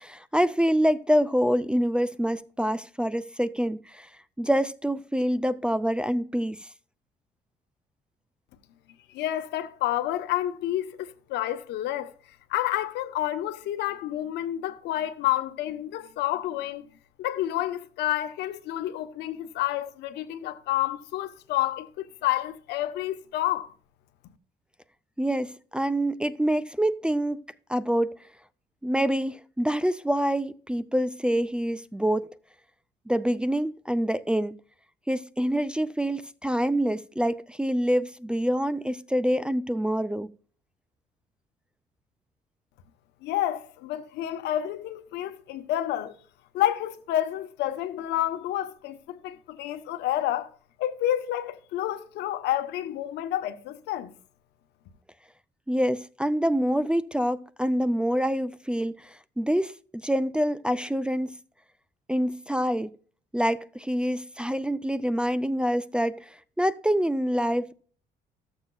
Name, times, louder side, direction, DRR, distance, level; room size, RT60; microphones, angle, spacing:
voice 1, 0.0-4.1 4.4-6.6 25.2-27.4 27.7-28.1 28.8-32.3 33.1-34.5 35.1-40.3 55.7-61.3 62.1-62.9 63.3-66.3 66.6-67.7, equal, 5° right, 0.4 m, -26 dB
voice 2, 9.1-12.1 12.5-16.9 17.2-23.7 43.2-46.2 46.5-50.5 50.8-54.1, left 13 dB, 85° left, 0.9 m, -29 dB
13.5 x 7.3 x 2.3 m
cardioid pair, 110°, 17 cm